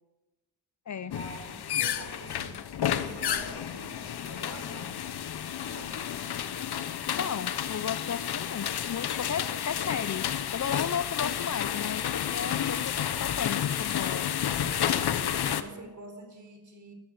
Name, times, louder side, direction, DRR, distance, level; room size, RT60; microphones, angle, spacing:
voice 1, 1.0-2.6 2.9-4.9 5.6-6.3 12.9-13.0 15.4-16.9, right 2 dB, 50° right, 5 dB, 4.2 m, -46 dB
sound 1, 1.1-15.6, left 9 dB, 85° left, 1.0 m, -31 dB
voice 2, 7.1-14.3, left 7 dB, 50° left, 16 dB, 0.6 m, -35 dB
13.5 x 13.0 x 7.6 m, 1.1 s
cardioid pair, 75°, 38 cm